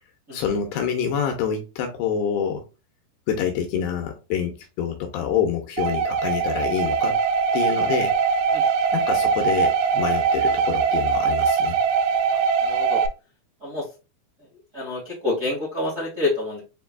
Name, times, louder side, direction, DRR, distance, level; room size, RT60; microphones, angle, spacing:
voice 1, 0.3-2.6 3.3-7.2 7.5-8.1 8.9-11.8, left 7 dB, 85° left, 3 dB, 2.4 m, -26 dB
sound 1, 5.8-13.1, right 6 dB, 85° right, 2.9 m, -22 dB
voice 2, 12.6-13.0 13.6-13.9 14.7-16.6, left 2 dB, 70° right, -7 dB, 0.7 m, -27 dB
7.2 x 2.6 x 2.3 m, 0.31 s
omnidirectional pair, 5.2 m